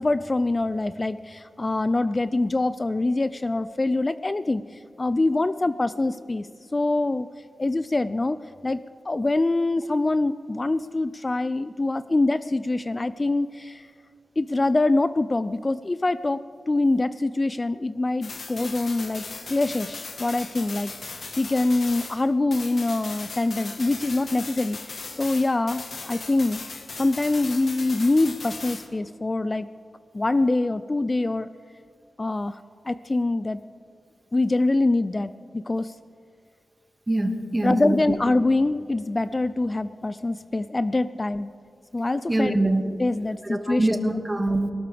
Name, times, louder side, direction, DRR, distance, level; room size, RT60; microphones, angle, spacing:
voice 1, 0.0-4.6 5.0-7.3 7.6-8.4 8.6-8.8 9.1-13.9 14.4-16.4 16.7-26.6 27.0-29.7 30.1-31.5 32.2-32.6 32.8-33.6 34.3-35.9 37.6-41.5 41.9-42.6 43.0-43.9, left 2 dB, 30° left, 14 dB, 0.3 m, -24 dB
sound 1, 18.2-22.3 22.5-28.9, left 4 dB, 65° left, 1.4 m, -38 dB
voice 2, 37.1-38.0 42.3-42.8 43.4-44.7, right 1 dB, 20° right, 4 dB, 1.7 m, -24 dB
19.5 x 18.0 x 3.4 m, 2.2 s
cardioid pair, 65°, 0 cm